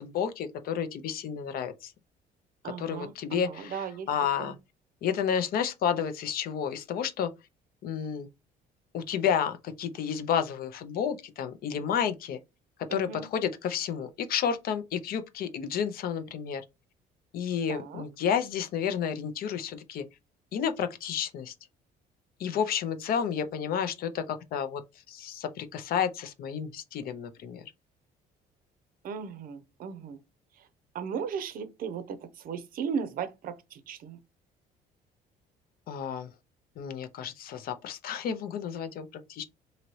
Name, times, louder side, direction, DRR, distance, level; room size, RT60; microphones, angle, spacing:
voice 1, 0.0-1.9 2.8-4.6 5.0-7.3 7.8-8.3 8.9-12.4 12.8-16.6 17.3-20.0 20.5-21.5 22.4-24.8 25.1-27.7 35.9-36.3 36.8-39.4, left 8 dB, 60° left, 0.5 m, -31 dB
voice 2, 2.6-4.1 4.4-4.5 12.9-13.3 17.7-18.0 29.0-30.2 30.6-30.7 30.9-34.2, right 7 dB, 60° right, 0.6 m, -36 dB
2.8 x 2.7 x 3.0 m
cardioid pair, 110°, 17 cm